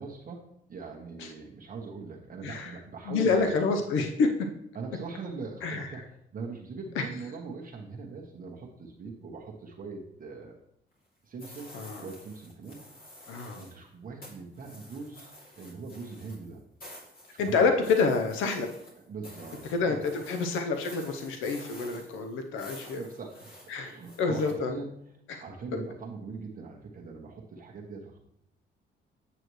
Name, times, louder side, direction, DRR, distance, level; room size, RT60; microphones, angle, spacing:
voice 1, 0.0-3.4 4.7-10.6 11.2-11.7 12.0-13.1 13.5-15.3 15.5-16.6 17.3-17.7 19.1-20.2 21.9-22.1 22.9-23.5 23.8-24.9 25.4-28.2, right 4 dB, 45° right, -1 dB, 1.2 m, -41 dB
voice 2, 3.1-4.3 5.6-5.9 7.0-7.1 11.7-12.0 13.3-13.6 17.4-18.7 19.7-23.0 23.7-23.9 24.2-24.7 25.3-25.4, left 4 dB, 90° left, 5 dB, 0.8 m, -27 dB
sound 1, 11.4-13.8 14.2-24.5, left 1 dB, 50° left, 2.6 m, -50 dB
8.1 x 6.9 x 3.1 m, 0.74 s
cardioid pair, 90°, 20 cm